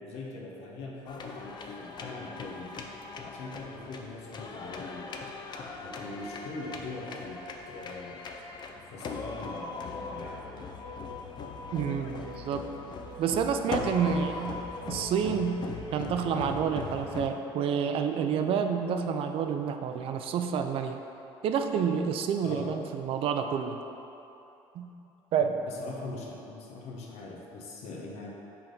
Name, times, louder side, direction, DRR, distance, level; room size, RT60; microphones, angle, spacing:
voice 1, 0.0-2.8 3.2-5.1 5.8-8.2 8.9-10.5 22.4-22.8 25.4-28.3, left 3 dB, 75° left, -2 dB, 1.1 m, -42 dB
sound 1, 1.1-17.3, left 4 dB, 40° left, 0.5 m, -39 dB
voice 2, 11.7-12.7 13.2-14.6 14.9-15.6 15.9-21.0 21.4-23.8 24.7-24.9 25.3-25.5, right 7 dB, 55° right, 6 dB, 0.5 m, -29 dB
5.8 x 3.5 x 5.4 m, 3.0 s
cardioid pair, 105°, 11 cm